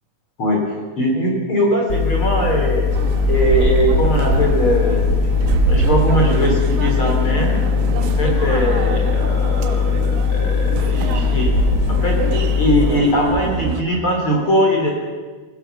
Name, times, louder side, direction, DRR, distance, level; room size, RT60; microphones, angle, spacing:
voice 1, 1.0-2.9 3.3-5.1 5.6-7.6 8.0-11.5 11.9-14.9, equal, 30° left, 0 dB, 3.7 m, -20 dB
sound 1, 1.9-12.9, left 6 dB, 50° left, 1.2 m, -19 dB
sound 2, 2.9-13.8, right 7 dB, 85° right, 3.9 m, -24 dB
23.5 x 16.0 x 7.0 m, 1.4 s
omnidirectional pair, 5.6 m